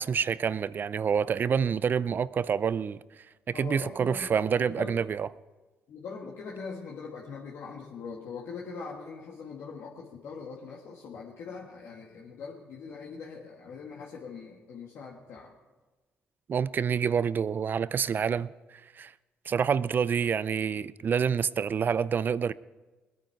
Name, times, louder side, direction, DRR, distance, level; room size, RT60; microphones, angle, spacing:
voice 1, 0.0-3.0 3.5-5.3 16.5-18.5 19.0-19.1 19.5-22.5, right 7 dB, 50° right, 0.4 m, -27 dB
voice 2, 3.5-4.4 4.6-4.9 5.9-15.5, left 5 dB, 70° left, 1.7 m, -42 dB
20.0 x 9.2 x 4.7 m
supercardioid pair, 60°, 4 cm